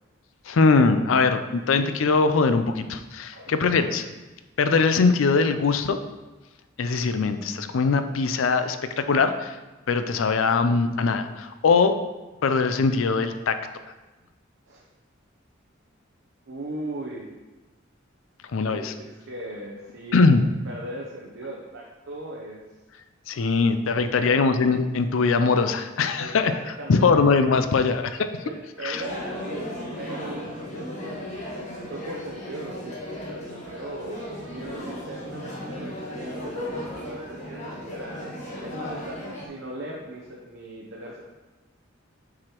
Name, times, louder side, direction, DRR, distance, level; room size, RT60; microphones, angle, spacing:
voice 1, 0.5-4.0 4.6-6.0 6.8-9.6 9.9-12.0 12.4-13.6 18.5-18.9 20.1-20.5 23.3-26.5 26.9-28.3 28.8-29.0, left 4 dB, 80° left, 9 dB, 0.4 m, -21 dB
voice 2, 16.5-17.3 18.6-20.2 20.6-22.6 24.1-24.4 26.2-27.2 28.4-30.9 31.7-38.3 38.6-41.2, right 1 dB, 65° right, -3 dB, 0.8 m, -38 dB
sound 1, 28.9-39.5, left 1 dB, 35° left, 1.3 m, -36 dB
7.3 x 4.9 x 3.0 m, 1.2 s
head